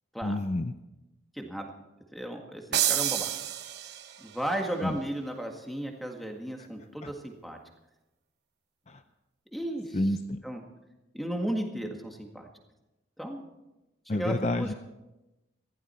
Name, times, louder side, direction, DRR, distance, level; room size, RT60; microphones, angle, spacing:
voice 1, 0.2-0.7 4.8-5.0 7.0-7.1 8.9-9.0 9.9-10.4 14.1-14.7, left 1 dB, 35° left, 8 dB, 0.6 m, -29 dB
voice 2, 1.3-1.7 2.1-3.3 4.2-7.6 9.5-10.0 10.4-10.6 11.1-12.5 13.2-13.4 14.1-14.8, right 1 dB, ahead, 2 dB, 1.7 m, -34 dB
sound 1, 2.7-4.4, right 11 dB, 60° right, 0.9 m, -29 dB
20.0 x 15.0 x 4.4 m, 0.99 s
head